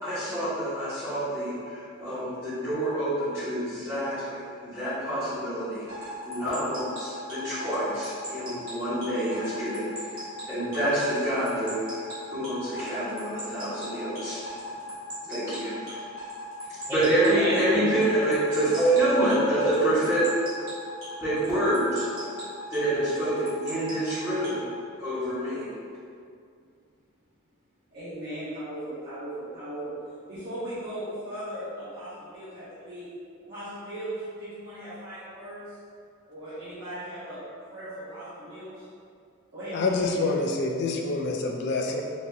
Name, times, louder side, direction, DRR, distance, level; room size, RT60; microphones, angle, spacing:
voice 1, 0.0-10.2 10.5-14.4 15.2-16.0 16.7-20.2 21.2-22.1 22.7-24.7 25.0-25.7, right 1 dB, 15° right, -16 dB, 1.2 m, -27 dB
sound 1, 5.9-24.6, equal, 90° right, 1.4 m, -38 dB
voice 2, 17.0-18.1 18.9-19.0 19.5-19.8 27.9-30.0 30.3-33.1 33.4-35.8 36.3-37.4 37.7-38.9 39.5-40.3, right 1 dB, 50° right, -15 dB, 1.4 m, -38 dB
voice 3, 39.7-42.0, left 3 dB, 55° left, 2 dB, 0.4 m, -26 dB
4.6 x 2.7 x 2.6 m, 2.3 s
head